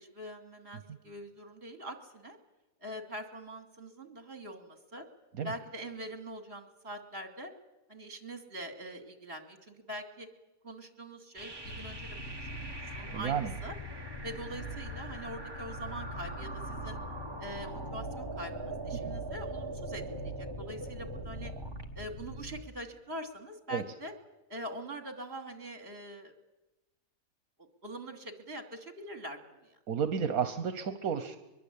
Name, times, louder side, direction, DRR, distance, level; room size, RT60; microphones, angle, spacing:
voice 1, 0.0-2.4 2.8-5.1 5.4-7.5 7.9-10.3 10.6-13.8 14.2-17.0 17.4-21.5 21.9-24.1 24.5-26.3 27.6-29.8, right 1 dB, 45° right, 5 dB, 3.1 m, -44 dB
sound 1, 11.4-21.8, right 3 dB, 15° right, 1.7 m, -43 dB
sound 2, 11.6-22.6, left 1 dB, 65° left, 2.1 m, -43 dB
voice 2, 13.1-13.5 23.7-23.8 29.9-31.4, right 7 dB, 75° right, 9 dB, 1.5 m, -31 dB
23.0 x 23.0 x 8.5 m, 1.0 s
omnidirectional pair, 1.5 m